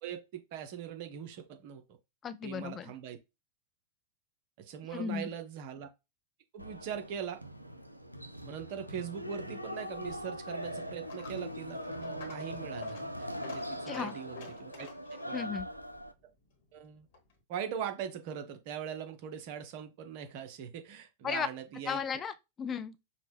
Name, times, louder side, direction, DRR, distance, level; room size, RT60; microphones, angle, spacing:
voice 1, 0.0-1.8 2.4-3.2 4.6-5.9 6.5-7.4 8.4-15.6 16.7-17.1 17.5-22.0, right 8 dB, 45° right, 0.7 m, -41 dB
voice 2, 2.2-2.9 4.9-5.3 13.9-14.1 15.3-15.7 21.2-21.5 21.9-23.0, left 7 dB, 25° left, 0.4 m, -35 dB
sound 1, 6.6-16.1, equal, 90° right, 0.4 m, -41 dB
Coin (dropping), 9.9-17.4, left 5 dB, 50° left, 1.2 m, -53 dB
5.0 x 2.2 x 3.3 m
figure-of-eight pair, 90°, 0 cm